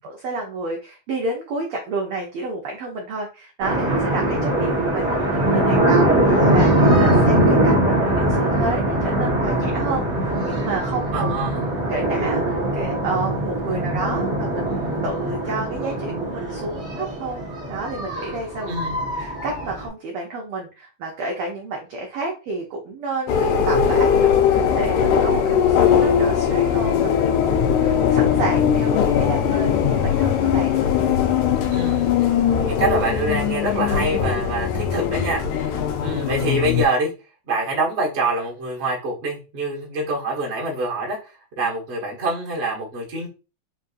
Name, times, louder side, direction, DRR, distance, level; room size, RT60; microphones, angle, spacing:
voice 1, 0.0-11.3 11.9-17.4 17.7-18.7 19.2-30.8, right 2 dB, 85° right, 0 dB, 1.2 m, -30 dB
sound 1, 3.6-19.9, right 1 dB, 35° right, 1.1 m, -21 dB
voice 2, 11.1-11.6 13.7-13.9 18.7-19.1 31.7-32.2 32.6-37.1 37.5-43.3, right 2 dB, 55° right, -2 dB, 0.7 m, -25 dB
sound 2, 23.3-36.9, left 8 dB, 85° left, 2.0 m, -20 dB
5.0 x 2.7 x 2.4 m, 0.32 s
omnidirectional pair, 3.3 m